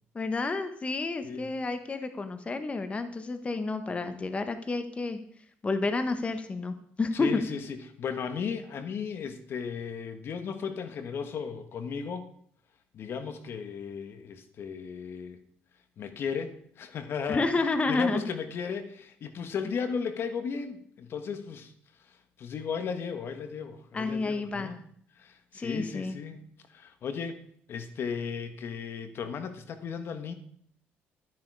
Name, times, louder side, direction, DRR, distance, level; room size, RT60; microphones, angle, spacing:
voice 1, 0.1-5.2 5.6-7.4 17.3-18.2 23.9-24.7 25.5-26.2, left 3 dB, 30° left, 9 dB, 1.3 m, -30 dB
voice 2, 7.1-12.3 12.9-15.4 16.0-21.7 22.0-24.8 25.2-26.4 26.7-27.4 27.7-30.3, left 6 dB, 60° left, 9 dB, 1.5 m, -35 dB
12.5 x 10.5 x 4.8 m, 0.62 s
cardioid pair, 90°, 5 cm